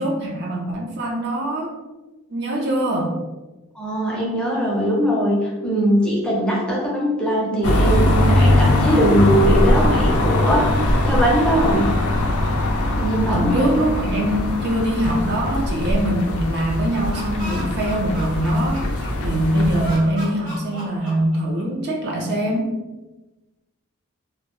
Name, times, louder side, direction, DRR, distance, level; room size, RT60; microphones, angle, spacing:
voice 1, 0.0-1.7 2.3-3.1 13.3-22.8, right 1 dB, 50° right, -1 dB, 0.4 m, -23 dB
voice 2, 3.7-11.9 13.0-13.8, equal, 5° left, -5 dB, 0.5 m, -21 dB
sound 1, 7.6-20.0, left 1 dB, 75° left, 0.4 m, -21 dB
Laughter, 16.8-19.3 19.8-21.8, right 1 dB, 90° right, 1.0 m, -36 dB
2.2 x 2.1 x 2.9 m, 1.1 s
head